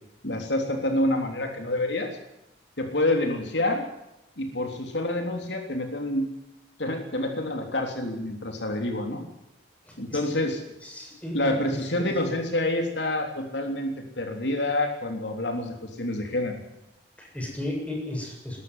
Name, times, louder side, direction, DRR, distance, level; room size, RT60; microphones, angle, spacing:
voice 1, 0.2-2.1 2.8-3.9 4.4-6.3 6.8-9.2 10.0-10.6 11.3-16.6, left 1 dB, 75° left, 4 dB, 3.5 m, -27 dB
voice 2, 9.9-10.2 10.8-12.3 17.2-18.6, left 1 dB, 10° left, 0 dB, 7.6 m, -34 dB
20.5 x 13.5 x 9.7 m, 0.89 s
head